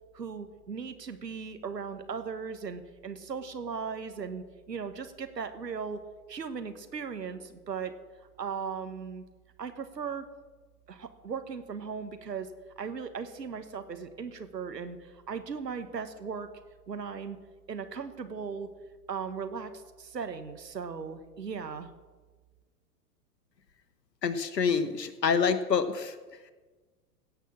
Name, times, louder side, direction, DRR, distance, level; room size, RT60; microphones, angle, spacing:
voice 1, 0.1-6.0 6.3-7.9 8.4-9.2 9.6-10.2 10.9-12.5 12.8-16.5 16.9-17.4 17.7-18.7 19.1-21.9, right 6 dB, 85° right, 9 dB, 1.4 m, -37 dB
voice 2, 24.2-26.2, left 6 dB, 85° left, 12 dB, 1.2 m, -27 dB
16.5 x 6.2 x 7.3 m, 1.3 s
figure-of-eight pair, 105°, 48 cm